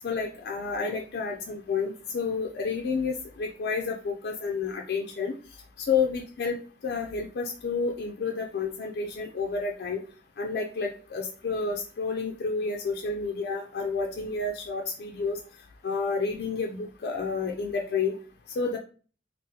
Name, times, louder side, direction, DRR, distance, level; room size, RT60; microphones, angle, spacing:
voice 1, 0.0-5.4 5.8-6.6 6.8-10.0 10.4-15.4 15.8-18.1 18.6-18.8, left 4 dB, 60° left, 1 dB, 0.3 m, -30 dB
2.7 x 2.0 x 3.8 m, 0.39 s
head